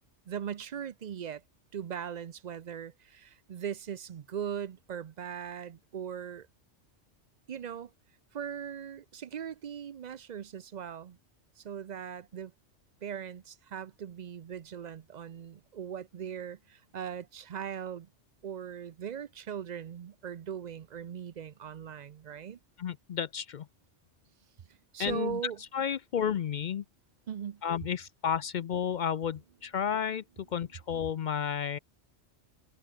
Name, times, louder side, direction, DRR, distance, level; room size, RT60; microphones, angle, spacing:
voice 1, 0.3-1.4 1.7-6.5 7.5-7.9 8.3-11.2 11.6-12.5 13.0-18.1 18.4-22.6 24.9-25.6 27.3-27.6, right 8 dB, 50° right, 0.5 m, -39 dB
voice 2, 22.8-23.7 25.0-25.4 25.7-26.8 27.6-30.2 30.5-31.8, left 8 dB, 60° left, 0.5 m, -32 dB
omnidirectional pair, 1.3 m